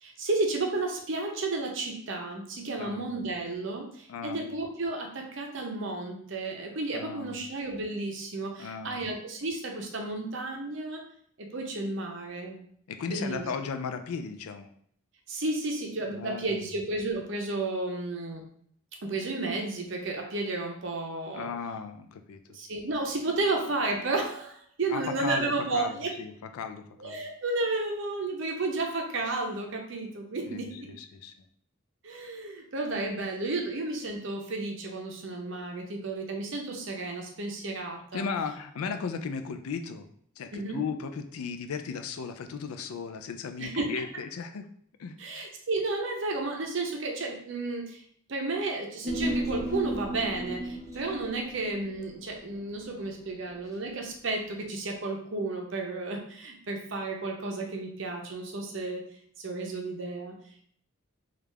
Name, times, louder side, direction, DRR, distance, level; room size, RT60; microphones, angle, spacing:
voice 1, 0.0-11.0 11.4-12.6 13.1-13.4 15.3-18.4 19.0-21.5 22.5-26.1 27.0-30.9 32.0-38.3 40.5-40.8 43.6-44.0 45.2-48.0 48.3-59.0 59.4-60.3, right 2 dB, 60° right, 1 dB, 0.6 m, -32 dB
voice 2, 4.1-4.4 6.9-7.4 8.6-9.0 12.9-14.7 16.1-16.6 21.3-22.4 24.9-27.2 30.5-31.3 38.1-40.1 40.4-44.7 45.0-45.2, left 5 dB, 85° left, 8 dB, 0.4 m, -36 dB
Human voice, 49.0-53.7 54.0-54.1, right 1 dB, 15° right, 0.5 m, -35 dB
3.3 x 2.4 x 3.2 m, 0.64 s
head